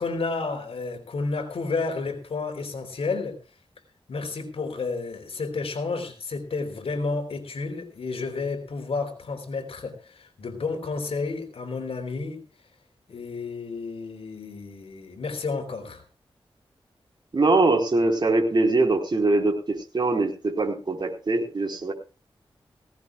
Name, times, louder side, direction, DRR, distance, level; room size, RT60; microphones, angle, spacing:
voice 1, 0.0-3.4 4.1-12.4 13.1-16.0, left 4 dB, 80° left, 3.8 m, -31 dB
voice 2, 17.3-21.9, right 2 dB, 50° right, 4.5 m, -22 dB
19.0 x 18.0 x 2.4 m
cardioid pair, 65°, 10 cm